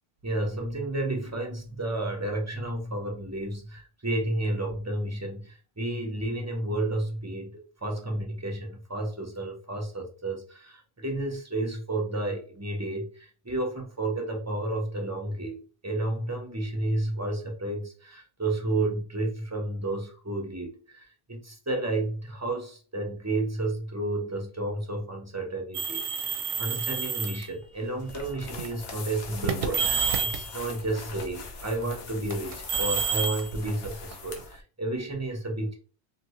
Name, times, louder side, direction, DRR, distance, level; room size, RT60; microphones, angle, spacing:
voice 1, 0.2-35.7, right 2 dB, 20° right, 2 dB, 0.6 m, -31 dB
sound 1, 25.7-27.4 28.3-28.7 29.4-30.5 32.3-34.4, right 6 dB, 70° right, 0.8 m, -29 dB
sound 2, 28.0-34.6, left 4 dB, 75° left, 0.9 m, -41 dB
2.9 x 2.6 x 3.0 m, 0.39 s
omnidirectional pair, 1.1 m